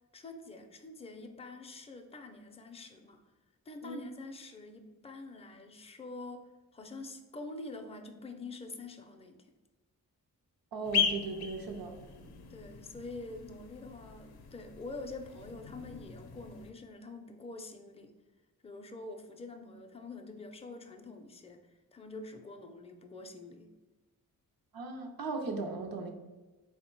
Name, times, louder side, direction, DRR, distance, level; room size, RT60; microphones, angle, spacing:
voice 1, 0.1-3.2 3.7-9.5 12.5-18.1 18.6-23.7, left 2 dB, 15° left, 4 dB, 0.4 m, -46 dB
voice 2, 10.7-12.0 24.7-26.1, right 3 dB, 70° right, 2 dB, 0.6 m, -37 dB
sound 1, 10.8-16.7, left 6 dB, 90° left, 0.5 m, -38 dB
3.6 x 2.2 x 4.4 m, 1.2 s
cardioid pair, 70°, 36 cm